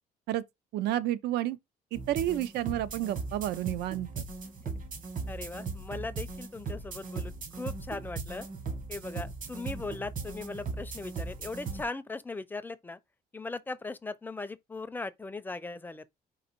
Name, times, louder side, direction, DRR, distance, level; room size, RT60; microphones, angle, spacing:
voice 1, 0.7-1.6 1.9-4.2, right 13 dB, 75° right, 0.5 m, -30 dB
sound 1, 1.9-11.8, right 4 dB, 50° right, 1.5 m, -38 dB
voice 2, 5.3-8.5 8.9-13.0 13.3-16.0, left 3 dB, 10° left, 0.4 m, -39 dB
3.9 x 2.5 x 4.4 m
cardioid pair, 110°, 17 cm